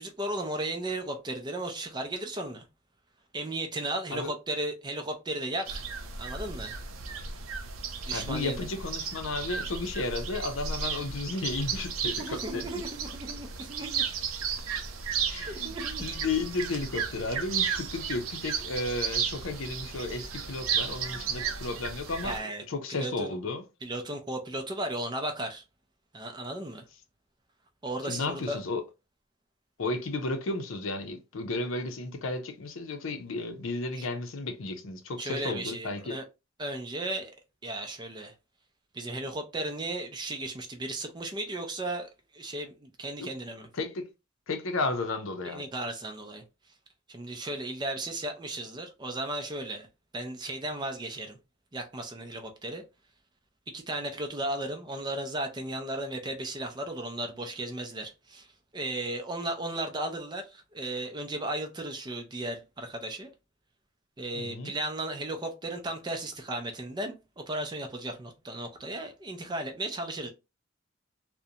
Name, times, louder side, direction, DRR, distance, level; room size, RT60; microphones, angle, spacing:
voice 1, 0.0-2.6 3.3-5.8 6.2-6.8 8.0-8.6 12.2-14.0 15.5-16.0 22.2-22.6 22.9-23.3 23.8-25.6 26.1-26.9 27.8-28.6 33.9-34.1 35.2-36.2 36.6-37.3 37.6-38.3 38.9-43.7 45.4-46.4 47.1-49.9 50.1-51.4 51.7-52.8 53.7-58.5 58.7-63.3 64.2-67.2 67.5-70.3, right 1 dB, 20° right, 0.4 m, -35 dB
sound 1, 5.7-22.4, right 6 dB, 75° right, 0.5 m, -34 dB
voice 2, 8.1-12.8 15.3-15.7 16.0-22.4 22.7-23.6 28.0-28.8 29.8-36.2 43.2-43.3 43.7-44.1 44.5-45.7 64.3-64.7, left 3 dB, 70° left, 0.5 m, -33 dB
2.5 x 2.1 x 2.7 m
head